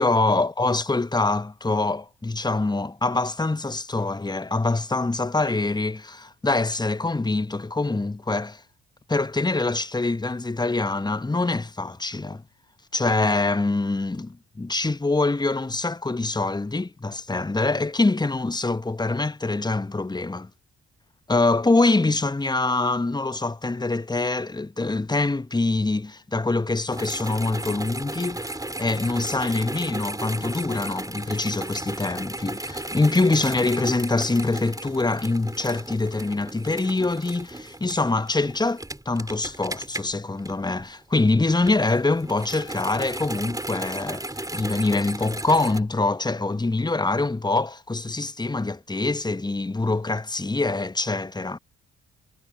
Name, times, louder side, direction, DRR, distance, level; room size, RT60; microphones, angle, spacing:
voice 1, 0.0-8.6 9.1-12.4 12.9-20.5 21.3-28.4 28.8-51.6, left 3 dB, 10° left, 1.1 m, -24 dB
sound 1, 26.9-41.0 41.4-45.8, right 1 dB, 10° right, 4.4 m, -35 dB
figure-of-eight pair, 40°, 35 cm